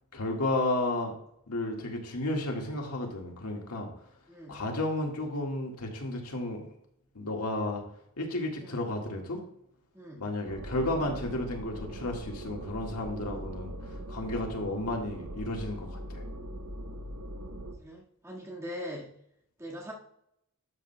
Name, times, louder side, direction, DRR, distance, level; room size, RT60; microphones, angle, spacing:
voice 1, 0.1-1.1 1.5-3.9 4.5-6.7 7.2-7.8 8.2-9.4 10.2-13.7 14.1-16.2, left 2 dB, 90° left, 1 dB, 1.8 m, -32 dB
voice 2, 4.3-4.6 8.6-8.8 9.9-10.3 17.8-19.1 19.6-19.9, equal, 10° right, -4 dB, 1.7 m, -41 dB
sound 1, 10.5-17.7, right 1 dB, 85° right, 0.9 m, -41 dB
12.0 x 7.3 x 2.3 m, 0.74 s
head